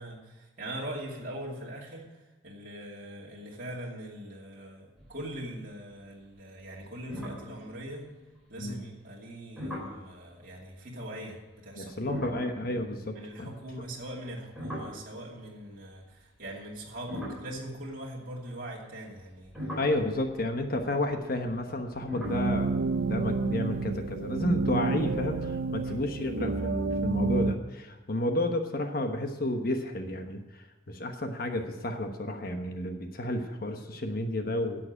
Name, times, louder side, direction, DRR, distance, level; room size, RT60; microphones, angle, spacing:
voice 1, 0.0-8.1 8.5-12.4 13.1-19.7 25.8-26.0, right 1 dB, 45° right, -4 dB, 2.6 m, -41 dB
sound 1, 5.0-5.6 5.9-6.3 6.7-6.8 7.1-8.4 9.6-10.0 12.0-15.6 16.3-18.5 19.2-24.5, left 1 dB, ahead, 4.3 m, -42 dB
voice 2, 11.8-13.5 19.8-34.9, left 1 dB, 50° left, 5 dB, 1.1 m, -31 dB
sound 2, 22.2-27.5, right 3 dB, 75° right, 0.7 m, -29 dB
11.0 x 7.8 x 8.7 m, 1.2 s
head